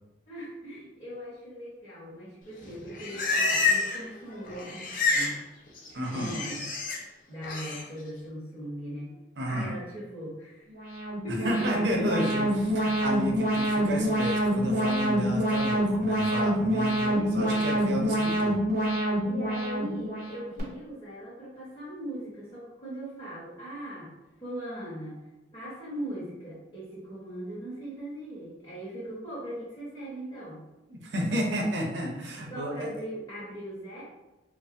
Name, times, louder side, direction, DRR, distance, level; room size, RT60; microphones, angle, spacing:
voice 1, 0.3-5.4 6.1-6.7 7.3-9.2 9.5-10.6 11.2-12.1 12.3-12.4 17.0-17.5 19.2-24.1 24.4-25.2 25.5-30.7 32.5-34.0, right 1 dB, 30° left, -9 dB, 0.8 m, -39 dB
Livestock farm animals working animals, 2.6-4.1 4.3-5.4 5.7-7.0 7.4-7.8, left 4 dB, 50° left, 0.4 m, -28 dB
voice 2, 5.9-6.3 9.4-9.7 11.4-18.6 30.9-32.9, equal, 75° right, 0 dB, 0.6 m, -32 dB
Alarm, 10.7-20.6, right 1 dB, 45° right, 0.8 m, -26 dB
3.2 x 2.0 x 2.6 m, 0.99 s
head